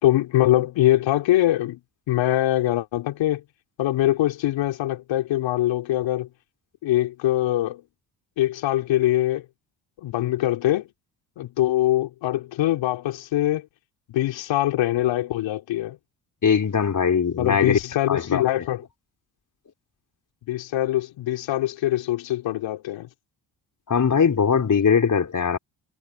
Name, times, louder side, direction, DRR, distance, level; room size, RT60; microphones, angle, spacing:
voice 1, 0.0-1.8 2.1-3.4 3.8-6.3 6.8-7.8 8.4-9.4 10.0-10.9 11.4-13.7 14.1-16.0 17.4-18.8 20.5-23.1, left 14 dB, 70° left, 4.5 m, -23 dB
voice 2, 16.4-17.8 18.1-18.4 23.9-25.6, left 6 dB, 40° left, 5.0 m, -20 dB
hypercardioid pair, 55°, 45 cm